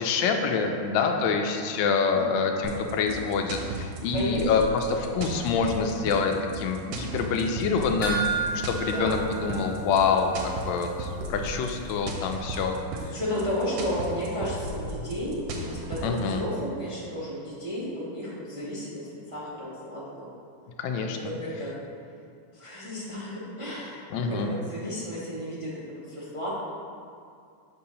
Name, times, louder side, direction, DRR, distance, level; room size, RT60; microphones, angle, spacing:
voice 1, 0.0-12.8 16.0-16.4 20.8-21.2 24.1-24.5, left 5 dB, 75° left, 4 dB, 1.2 m, -26 dB
sound 1, 2.6-16.2, right 2 dB, 75° right, 1.3 m, -36 dB
voice 2, 4.1-4.7 5.1-5.3 8.9-9.2 9.5-9.6 13.0-20.3 21.0-21.8 22.5-26.5, equal, 30° right, -8 dB, 0.6 m, -33 dB
sound 2, 8.0-10.6 10.8-10.9 11.4-11.5, right 4 dB, 35° left, 0.9 m, -32 dB
6.9 x 2.8 x 5.4 m, 2.4 s
omnidirectional pair, 2.3 m